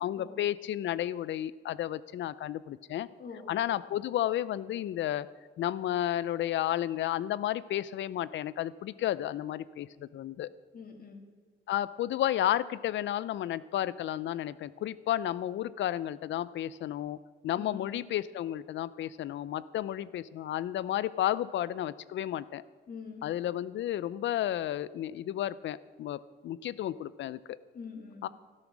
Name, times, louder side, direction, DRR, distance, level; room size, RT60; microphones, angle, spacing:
voice 1, 0.0-3.1 3.5-5.3 5.6-10.5 11.7-17.2 17.4-22.6 23.2-27.6 28.2-28.3, left 12 dB, 70° left, 18 dB, 0.6 m, -32 dB
voice 2, 3.2-3.5 10.7-11.2 17.5-18.0 22.9-23.2 27.7-28.3, left 5 dB, 50° left, 2 dB, 2.7 m, -44 dB
13.0 x 12.0 x 6.2 m, 1.4 s
cardioid pair, 90°, 20 cm